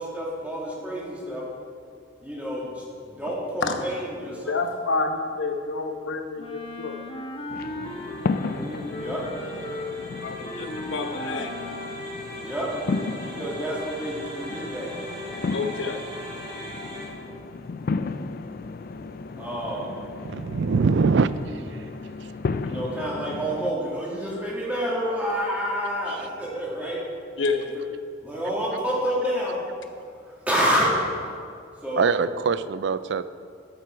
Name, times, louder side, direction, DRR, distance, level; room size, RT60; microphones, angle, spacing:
voice 1, 0.0-1.4 2.2-2.7 3.1-4.6 8.3-9.2 12.4-12.7 13.2-15.1 19.4-19.9 22.6-27.0 27.6-27.7 28.2-29.6 30.5-30.9 31.8-32.1, equal, 10° right, -6 dB, 2.4 m, -28 dB
voice 2, 4.5-7.0 10.2-11.5 15.5-16.0 27.4-27.7, left 3 dB, 70° left, 5 dB, 1.0 m, -28 dB
Wind instrument woodwind instrument, 6.4-8.6 8.9-12.0, left 1 dB, 30° left, 1.1 m, -36 dB
sound 1, 7.5-23.7, left 4 dB, 50° left, 0.4 m, -34 dB
sound 2, 7.8-17.1, equal, 25° right, 2.4 m, -39 dB
voice 3, 20.2-21.3 26.1-26.2 32.0-33.2, right 5 dB, 65° right, 14 dB, 0.4 m, -22 dB
13.5 x 7.7 x 4.6 m, 2.3 s
head